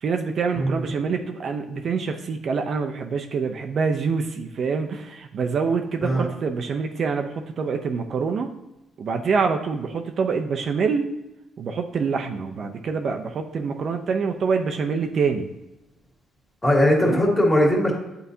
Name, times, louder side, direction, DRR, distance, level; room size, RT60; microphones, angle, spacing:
voice 1, 0.0-8.5 9.0-11.1 11.6-15.5 17.0-17.2, right 5 dB, 55° right, 4 dB, 0.5 m, -26 dB
voice 2, 16.6-17.9, equal, 15° left, -2 dB, 1.9 m, -19 dB
9.1 x 4.0 x 2.7 m, 0.96 s
cardioid pair, 90°, 0 cm